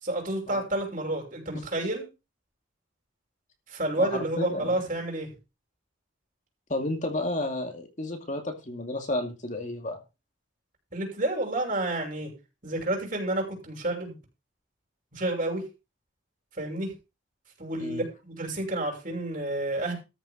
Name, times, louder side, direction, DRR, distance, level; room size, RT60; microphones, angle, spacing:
voice 1, 0.0-2.1 3.7-5.3 10.9-12.3 12.6-14.1 15.1-15.6 16.6-16.9 17.6-19.9, right 1 dB, 45° right, 1 dB, 6.0 m, -30 dB
voice 2, 4.0-4.8 6.7-10.0 17.8-18.0, left 1 dB, 40° left, 4 dB, 2.3 m, -32 dB
13.5 x 7.4 x 5.1 m, 0.28 s
head